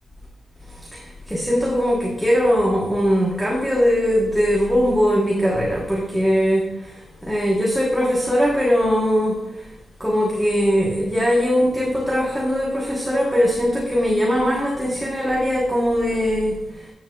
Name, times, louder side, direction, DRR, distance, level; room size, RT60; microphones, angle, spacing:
voice 1, 0.9-9.4 10.0-16.9, equal, ahead, -5 dB, 1.3 m, -20 dB
10.0 x 6.9 x 2.4 m, 0.95 s
wide cardioid pair, 130°, 0 cm